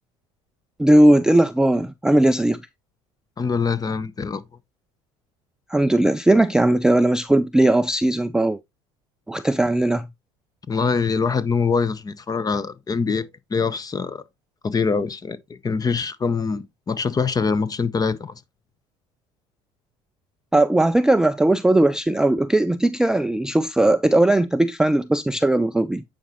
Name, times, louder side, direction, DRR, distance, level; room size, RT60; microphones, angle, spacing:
voice 1, 0.8-2.6 5.7-8.6 9.3-10.1 20.5-26.0, right 1 dB, 5° right, 0.3 m, -18 dB
voice 2, 3.4-4.4 10.7-14.2 14.6-18.3, left 5 dB, 25° left, 0.8 m, -24 dB
9.0 x 5.1 x 3.0 m
supercardioid pair, 90°, 15 cm